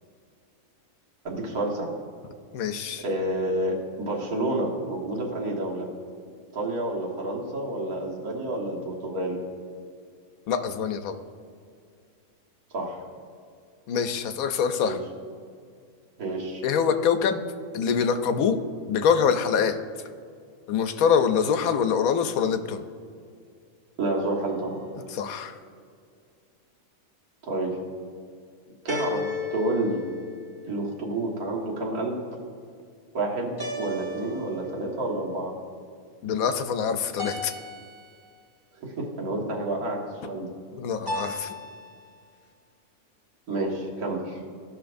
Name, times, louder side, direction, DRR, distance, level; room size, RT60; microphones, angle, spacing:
voice 1, 1.2-1.9 3.0-5.9 6.5-9.4 12.7-13.0 14.8-15.0 16.2-16.6 24.0-24.8 27.4-27.8 28.9-30.0 30.6-32.2 33.1-35.5 38.8-40.0 40.3-40.5 43.5-44.4, right 2 dB, 85° right, -2 dB, 1.9 m, -29 dB
voice 2, 2.5-3.0 10.5-11.2 13.9-15.0 16.6-17.4 17.7-18.6 18.9-19.8 20.7-22.8 25.1-25.6 36.2-37.5 40.8-41.6, left 7 dB, 75° left, 9 dB, 1.0 m, -24 dB
sound 1, 24.5-25.1 28.9-30.9 33.6-35.0 37.2-38.4 41.1-42.0, left 2 dB, 20° right, 0.7 m, -36 dB
15.5 x 5.9 x 2.5 m, 2.3 s
omnidirectional pair, 1.5 m